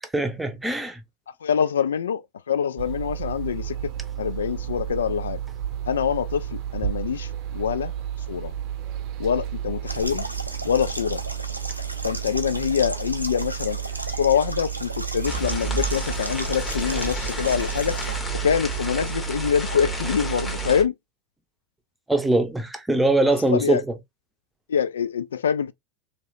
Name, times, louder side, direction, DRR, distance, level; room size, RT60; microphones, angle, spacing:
voice 1, 0.1-1.0 22.1-23.8, right 2 dB, 5° right, 0.7 m, -22 dB
voice 2, 1.4-3.9 4.2-5.4 5.9-7.9 8.3-8.5 9.2-10.3 10.6-11.2 12.0-13.8 14.1-18.0 18.3-20.9 23.5-23.8 24.7-25.7, left 7 dB, 70° left, 0.3 m, -25 dB
sound 1, 2.8-20.9, right 10 dB, 45° right, 0.6 m, -32 dB
sound 2, 9.9-18.2, right 1 dB, 90° right, 0.4 m, -35 dB
sound 3, 15.3-20.8, left 1 dB, 15° left, 1.2 m, -32 dB
3.0 x 2.9 x 2.5 m
figure-of-eight pair, 80°, 0 cm